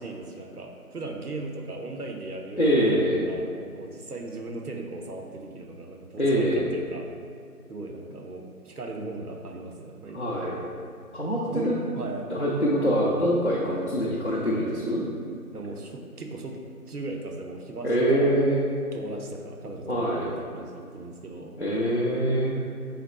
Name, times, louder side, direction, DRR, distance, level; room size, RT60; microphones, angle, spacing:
voice 1, 0.0-7.1 7.7-10.2 11.5-12.3 13.6-13.8 15.5-16.6 16.9-18.3 18.9-21.6, right 2 dB, 80° right, 2 dB, 0.7 m, -38 dB
voice 2, 2.6-3.3 6.2-6.7 10.1-10.6 11.1-11.8 12.3-15.0 17.8-18.7 19.9-20.3 21.6-22.6, equal, 50° left, -6 dB, 0.5 m, -24 dB
4.0 x 3.1 x 4.2 m, 2.3 s
figure-of-eight pair, 175°, 45 cm